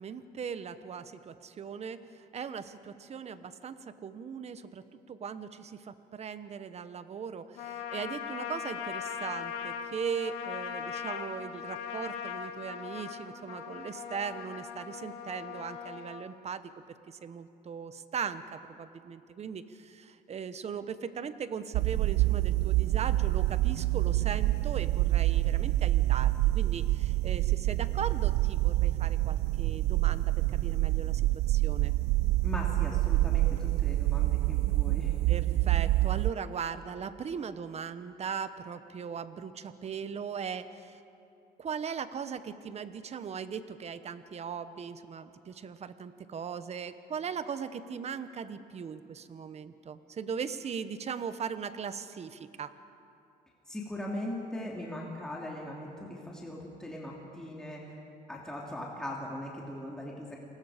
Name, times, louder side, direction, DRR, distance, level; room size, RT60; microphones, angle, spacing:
voice 1, 0.0-16.7 17.1-31.9 35.3-41.0 41.6-52.7, right 6 dB, 40° right, 12 dB, 1.0 m, -39 dB
Trumpet, 7.6-16.2, left 8 dB, 90° left, 2.2 m, -39 dB
sound 1, 21.7-36.3, right 17 dB, 75° right, 0.4 m, -27 dB
voice 2, 32.4-35.2 53.7-58.0 58.3-60.4, left 1 dB, 5° left, -3 dB, 3.0 m, -39 dB
28.5 x 20.0 x 5.1 m, 2.6 s
cardioid pair, 110°, 17 cm